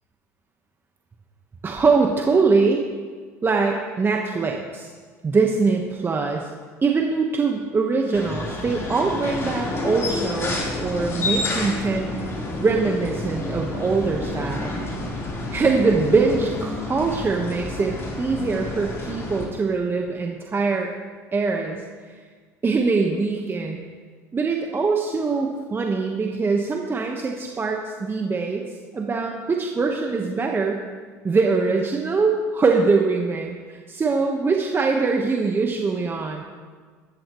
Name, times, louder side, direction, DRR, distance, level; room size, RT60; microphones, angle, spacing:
voice 1, 1.6-2.8 3.4-4.9 5.2-6.5 6.8-12.1 12.6-14.7 15.5-20.9 21.3-21.8 22.1-22.2 22.6-23.8 24.3-28.6 28.9-30.8 31.2-36.4, right 4 dB, 25° right, 2 dB, 1.3 m, -23 dB
sound 1, 8.1-19.5, left 2 dB, 30° left, 4.0 m, -29 dB
14.0 x 13.5 x 3.2 m, 1.6 s
hypercardioid pair, 75°, 8 cm